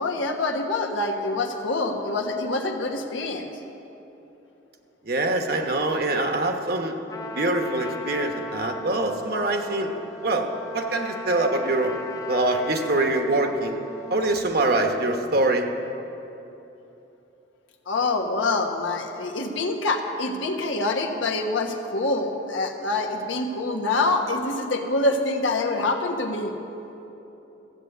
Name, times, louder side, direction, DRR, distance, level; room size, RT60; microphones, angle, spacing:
voice 1, 0.0-3.5 17.9-26.5, left 2 dB, 90° left, 2 dB, 1.3 m, -26 dB
voice 2, 5.0-7.0 7.3-9.9 10.2-10.5 10.7-12.0 12.3-13.8 14.1-15.7, right 2 dB, 50° right, 4 dB, 1.1 m, -24 dB
Trumpet, 7.1-14.4, left 2 dB, 15° left, 0.6 m, -37 dB
14.0 x 8.0 x 8.0 m, 3.0 s
head